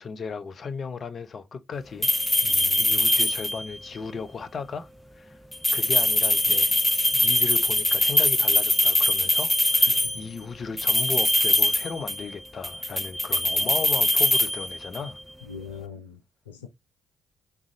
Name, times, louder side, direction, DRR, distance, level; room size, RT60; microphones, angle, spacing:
voice 1, 0.0-2.1 2.4-2.5 2.8-5.4 5.7-6.7 7.1-15.2, left 5 dB, 50° left, 0.8 m, -36 dB
sound 1, 2.0-3.8 5.5-10.2 10.8-12.3 12.6-15.1, left 1 dB, 5° left, 0.7 m, -22 dB
voice 2, 2.4-3.0 9.9-10.3 13.5-13.6 15.4-16.2 16.5-16.7, left 6 dB, 90° left, 0.5 m, -41 dB
3.6 x 3.4 x 3.8 m
hypercardioid pair, 40°, 0 cm